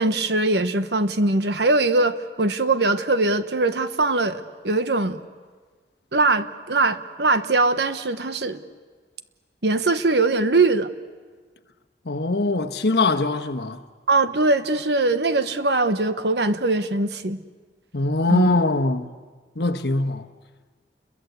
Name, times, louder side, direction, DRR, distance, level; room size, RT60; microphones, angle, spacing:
voice 1, 0.0-5.2 6.1-8.6 9.6-10.9 14.1-17.4 18.3-18.5, right 2 dB, 75° right, 1.2 m, -21 dB
voice 2, 12.0-13.8 17.9-19.1 19.5-20.3, left 2 dB, 70° left, 1.2 m, -22 dB
29.5 x 22.5 x 8.2 m
head